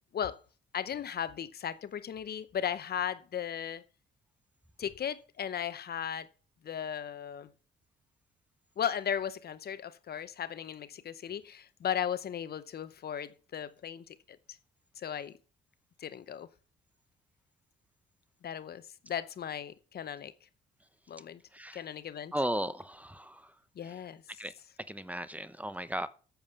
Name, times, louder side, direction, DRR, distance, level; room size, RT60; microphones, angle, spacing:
voice 1, 0.7-3.8 4.8-6.3 6.6-7.5 8.8-14.4 15.0-15.4 16.0-16.5 18.4-20.3 21.1-21.4 21.7-22.3 23.8-24.2, left 9 dB, 50° left, 0.8 m, -36 dB
voice 2, 21.5-21.8 22.3-23.5 23.8-24.0 24.4-24.5 24.9-26.1, right 1 dB, 5° right, 0.8 m, -36 dB
8.8 x 7.3 x 6.8 m
cardioid pair, 90°, 20 cm